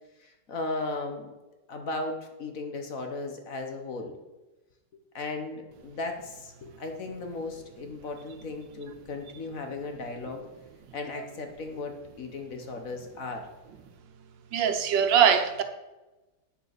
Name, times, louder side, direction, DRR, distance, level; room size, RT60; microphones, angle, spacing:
voice 1, 0.2-1.3 1.7-4.1 5.1-10.4 10.9-13.5, left 3 dB, 50° left, 4 dB, 1.6 m, -36 dB
voice 2, 14.5-15.6, right 8 dB, 80° right, 7 dB, 1.6 m, -22 dB
8.8 x 6.7 x 6.7 m, 1.1 s
omnidirectional pair, 2.0 m